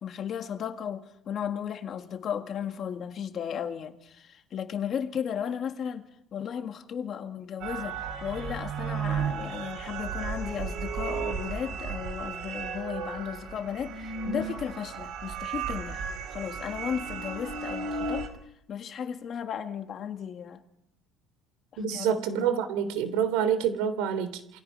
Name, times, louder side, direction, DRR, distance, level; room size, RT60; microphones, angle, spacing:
voice 1, 0.0-16.0 16.3-18.3 18.7-20.6 21.9-22.5, left 8 dB, 35° left, 1.9 m, -35 dB
sound 1, 7.6-18.3, right 5 dB, 50° right, 4.2 m, -34 dB
voice 2, 21.8-24.6, right 8 dB, 75° right, 3.1 m, -27 dB
28.5 x 21.5 x 5.5 m
cardioid pair, 175°, 0 cm